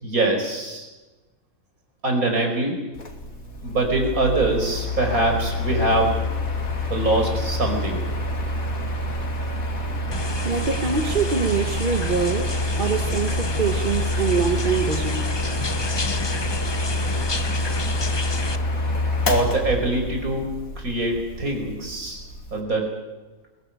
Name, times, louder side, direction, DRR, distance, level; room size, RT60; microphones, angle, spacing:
voice 1, 0.0-0.9 2.0-2.8 3.6-6.2 6.9-8.0 19.3-20.5 20.8-22.2 22.5-22.9, right 2 dB, 75° right, 5.3 m, -23 dB
Mechanical fan, 3.0-22.6, left 1 dB, 75° left, 2.9 m, -27 dB
sound 1, 10.1-18.6, left 3 dB, 25° left, 0.7 m, -31 dB
voice 2, 10.4-15.3, right 5 dB, 40° right, 1.3 m, -24 dB
22.0 x 18.0 x 9.2 m
omnidirectional pair, 1.5 m